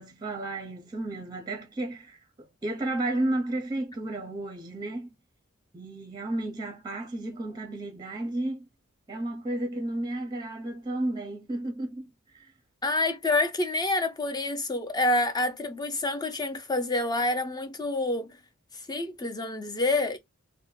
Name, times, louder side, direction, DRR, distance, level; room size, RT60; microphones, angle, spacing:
voice 1, 0.0-2.2 2.6-5.1 5.7-8.7 9.1-12.5, right 1 dB, 20° right, 0.6 m, -32 dB
voice 2, 12.8-18.4 18.7-20.2, left 2 dB, 20° left, 0.6 m, -27 dB
2.5 x 2.1 x 3.8 m
head